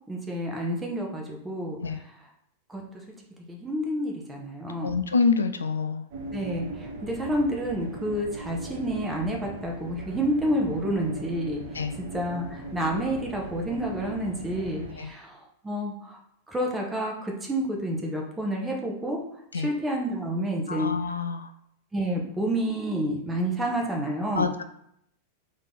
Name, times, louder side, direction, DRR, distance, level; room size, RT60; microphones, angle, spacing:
voice 1, 0.1-1.8 2.7-2.8 3.5-5.0 6.3-11.6 12.0-16.2 16.5-19.2 19.5-20.9 21.9-24.5, equal, 10° right, 0 dB, 1.1 m, -29 dB
voice 2, 4.8-6.0 11.7-11.9 15.0-15.1 19.5-19.7 20.7-21.5 24.3-24.6, left 5 dB, 70° left, 9 dB, 0.3 m, -26 dB
sound 1, 6.1-15.0, right 3 dB, 50° right, 1.1 m, -39 dB
3.8 x 3.5 x 3.9 m, 0.74 s
figure-of-eight pair, 90°, 0 cm